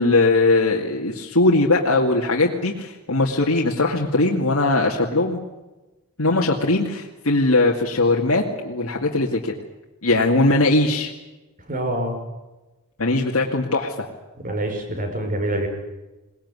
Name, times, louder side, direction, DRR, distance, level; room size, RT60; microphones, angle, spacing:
voice 1, 0.0-5.4 6.2-9.5 10.0-11.1 13.0-14.1, left 2 dB, 70° left, -1 dB, 2.3 m, -20 dB
voice 2, 11.7-12.2 14.4-15.7, right 1 dB, 40° right, 5 dB, 5.7 m, -25 dB
21.5 x 20.0 x 9.8 m, 1.1 s
head